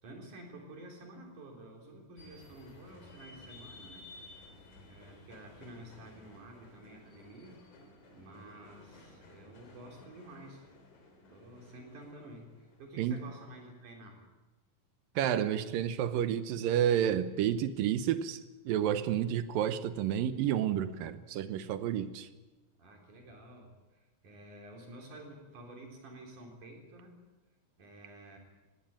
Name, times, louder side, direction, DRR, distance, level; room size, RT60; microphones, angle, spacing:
voice 1, 0.0-4.1 4.8-7.7 8.1-10.6 11.3-14.2 22.8-27.2 27.8-28.4, right 1 dB, 60° right, 1 dB, 5.0 m, -51 dB
sound 1, 2.2-13.7, left 2 dB, 75° left, 5.1 m, -55 dB
voice 2, 15.2-18.4 18.7-22.3, right 10 dB, 90° right, 12 dB, 2.6 m, -30 dB
19.0 x 16.5 x 8.9 m, 1.2 s
omnidirectional pair, 4.0 m